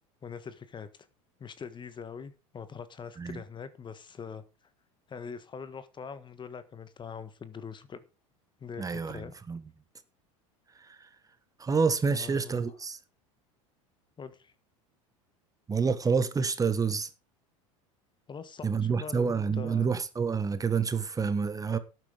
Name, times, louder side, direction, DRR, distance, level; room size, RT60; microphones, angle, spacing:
voice 1, 0.2-1.1 1.4-4.4 5.1-8.0 8.6-9.4 12.1-12.7 14.2-14.5 18.3-19.9, left 6 dB, 25° left, 1.5 m, -43 dB
voice 2, 8.8-9.6 10.8-11.0 11.6-13.0 15.7-17.1 18.6-21.8, right 5 dB, 20° right, 1.4 m, -28 dB
11.5 x 9.4 x 5.0 m
hypercardioid pair, 90°, 18 cm